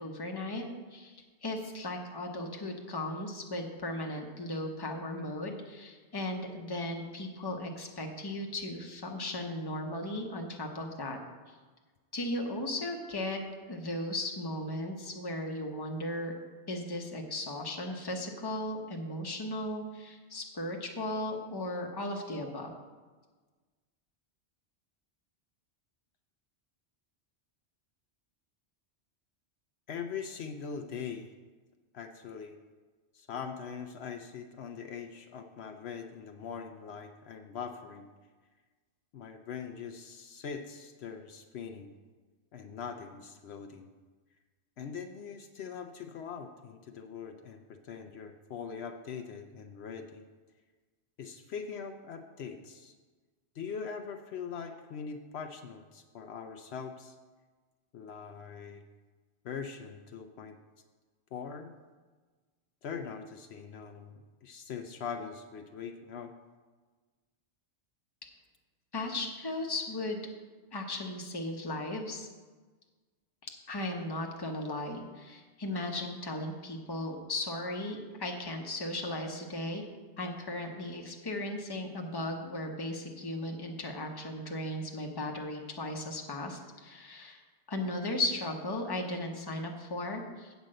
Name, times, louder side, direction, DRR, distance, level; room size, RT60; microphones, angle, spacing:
voice 1, 0.0-11.2 12.1-13.4 13.7-16.3 16.7-22.7 68.9-70.2 70.7-72.3 73.4-79.8 80.2-87.4 87.7-90.5, left 1 dB, 20° left, 2 dB, 0.9 m, -36 dB
voice 2, 29.9-31.3 31.9-32.6 33.1-38.1 39.1-41.9 42.5-43.9 44.8-50.2 51.2-52.9 53.5-57.2 57.9-58.8 59.4-60.6 61.3-61.7 62.8-66.3, left 6 dB, 70° left, 6 dB, 0.8 m, -42 dB
8.1 x 5.2 x 7.6 m, 1.4 s
omnidirectional pair, 1.2 m